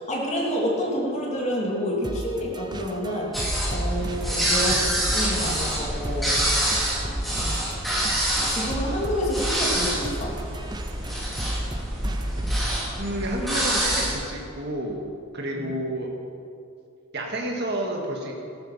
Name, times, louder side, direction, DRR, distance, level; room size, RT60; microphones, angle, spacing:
voice 1, 0.1-3.3 3.7-6.8 7.3-7.5 8.5-10.3 15.6-15.7, equal, 30° left, -3 dB, 2.8 m, -28 dB
sound 1, 2.0-12.7, right 1 dB, 20° right, 0.6 m, -35 dB
sound 2, 3.3-14.1, right 1 dB, ahead, 3.3 m, -26 dB
voice 2, 12.7-15.1 15.3-16.1 17.1-18.3, right 1 dB, 50° right, 0 dB, 2.0 m, -30 dB
14.5 x 12.5 x 5.7 m, 2.5 s
head